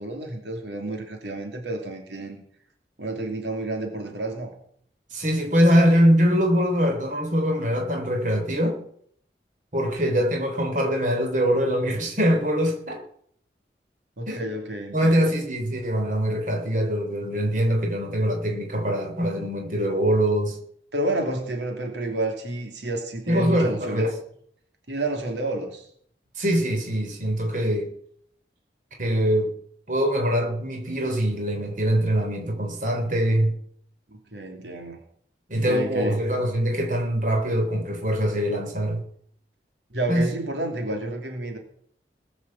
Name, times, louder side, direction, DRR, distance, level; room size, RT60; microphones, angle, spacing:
voice 1, 0.0-2.4 3.0-4.5 14.2-15.3 20.9-24.1 24.9-25.9 34.1-35.0 35.7-36.3 39.9-41.6, right 1 dB, 85° right, 3 dB, 2.8 m, -30 dB
voice 2, 5.1-8.8 9.7-13.0 14.3-14.4 14.9-20.6 23.3-24.1 26.4-27.9 29.0-29.5 29.9-33.6 35.5-39.1 40.1-40.3, equal, 45° right, 3 dB, 3.6 m, -23 dB
20.0 x 7.2 x 7.6 m, 0.64 s
head